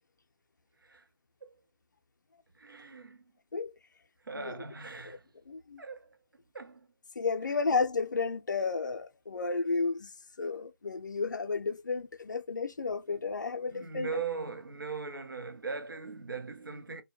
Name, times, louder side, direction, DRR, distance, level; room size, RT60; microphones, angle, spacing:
voice 1, 2.5-3.2 4.2-5.3 5.8-6.2 6.5-6.9 7.4-7.6 13.1-13.2 13.7-17.0, right 4 dB, 70° right, 0.7 m, -40 dB
voice 2, 5.5-5.8 7.2-10.1 10.4-14.1, left 4 dB, 60° left, 0.4 m, -32 dB
2.2 x 2.1 x 2.8 m
figure-of-eight pair, 155°, 11 cm